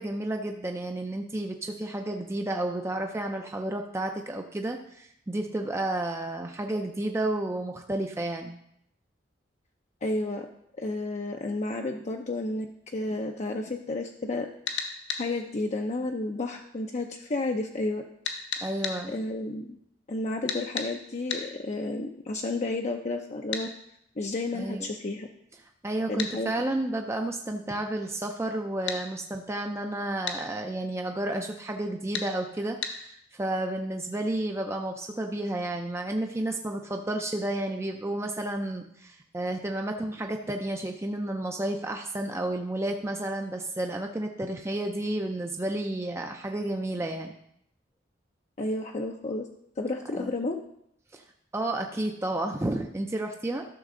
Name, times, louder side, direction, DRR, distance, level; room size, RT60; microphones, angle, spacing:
voice 1, 0.0-8.6 18.6-19.1 24.5-24.9 25.8-47.3 50.1-50.3 51.1-51.2 51.5-53.7, right 1 dB, 15° right, 3 dB, 0.5 m, -31 dB
voice 2, 10.0-10.5 10.8-14.5 15.2-18.0 19.1-19.7 20.1-23.7 24.2-25.3 26.1-26.5 48.6-49.5 49.8-50.6, left 2 dB, 40° left, 2 dB, 0.6 m, -31 dB
sound 1, 14.7-15.3 18.2-19.0 20.5-20.9 21.3-21.5 23.5-23.7 26.2-26.3 28.9-29.0 30.3-30.4 32.1-32.3 32.8-33.0, left 6 dB, 70° left, 1.2 m, -32 dB
13.0 x 6.4 x 3.8 m, 0.74 s
head